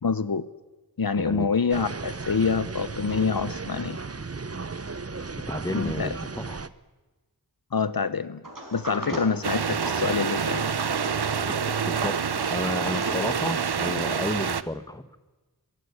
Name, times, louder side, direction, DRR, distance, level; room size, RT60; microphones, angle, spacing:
voice 1, 0.0-0.4 1.0-4.0 5.7-6.2 7.7-8.4 8.7-10.7, left 5 dB, 65° left, 16 dB, 0.9 m, -26 dB
voice 2, 1.2-1.5 5.5-6.6 9.1-9.2 11.5-12.2 12.5-15.2, left 1 dB, 10° left, 13 dB, 1.4 m, -32 dB
sound 1, 1.7-6.7, right 4 dB, 40° right, 0.9 m, -35 dB
Sliding door, 8.4-13.9, right 1 dB, 55° right, 5.4 m, -38 dB
sound 2, 9.4-14.6, right 6 dB, 85° right, 0.8 m, -27 dB
22.5 x 15.0 x 9.8 m, 1.2 s
wide cardioid pair, 45°, 38 cm